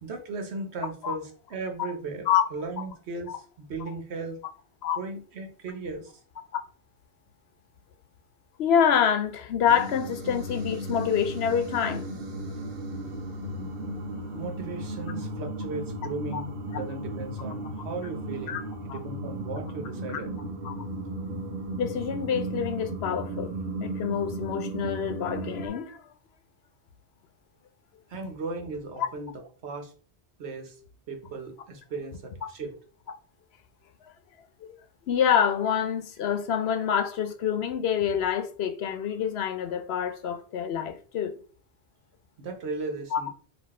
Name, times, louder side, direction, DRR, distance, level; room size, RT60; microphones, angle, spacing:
voice 1, 0.0-4.4 5.0-6.1 11.8-11.9 14.3-18.6 18.8-20.3 28.1-29.9 30.4-30.8 31.1-32.7 42.4-43.3, right 3 dB, 90° right, 1.2 m, -37 dB
voice 2, 8.6-12.1 13.4-13.8 16.3-16.4 18.5-18.6 18.9-19.0 20.1-20.2 20.6-20.7 21.8-23.5 23.8-26.0 29.0-29.1 34.6-34.7 35.1-41.3 43.1-43.3, left 8 dB, 75° left, 0.9 m, -26 dB
sound 1, 9.7-25.7, right 1 dB, 65° right, 1.0 m, -35 dB
4.3 x 2.7 x 4.2 m
omnidirectional pair, 1.1 m